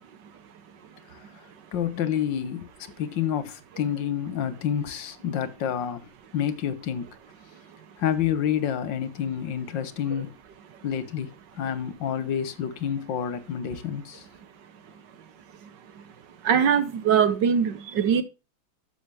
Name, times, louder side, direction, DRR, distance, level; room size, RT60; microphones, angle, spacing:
voice 1, 1.7-2.7 3.0-7.1 8.0-10.4 10.8-11.3 11.6-14.2, left 9 dB, 75° left, 1.7 m, -28 dB
voice 2, 15.6-16.0 16.4-18.2, right 7 dB, 70° right, 1.7 m, -23 dB
12.5 x 6.8 x 3.3 m
omnidirectional pair, 2.0 m